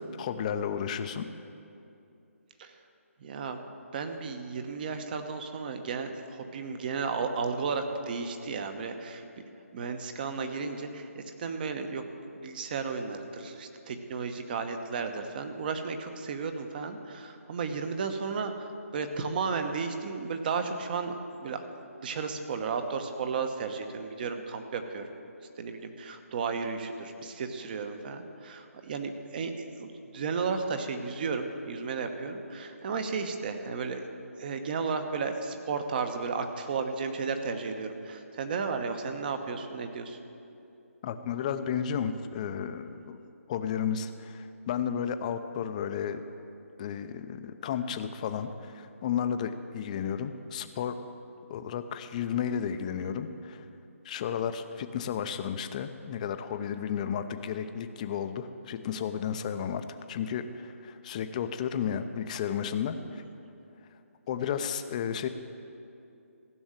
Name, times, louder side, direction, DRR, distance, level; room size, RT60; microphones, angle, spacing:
voice 1, 0.2-1.3 41.0-43.2 43.5-46.2 46.8-51.0 51.5-53.6 54.0-63.2 64.3-65.3, left 8 dB, 30° left, 9 dB, 0.6 m, -33 dB
voice 2, 3.2-3.6 3.9-9.2 9.7-12.0 12.3-21.6 22.0-25.1 25.6-34.0 34.4-40.2 62.9-63.1, right 5 dB, 40° right, 7 dB, 1.1 m, -34 dB
15.5 x 6.3 x 9.0 m, 2.7 s
figure-of-eight pair, 155°, 8 cm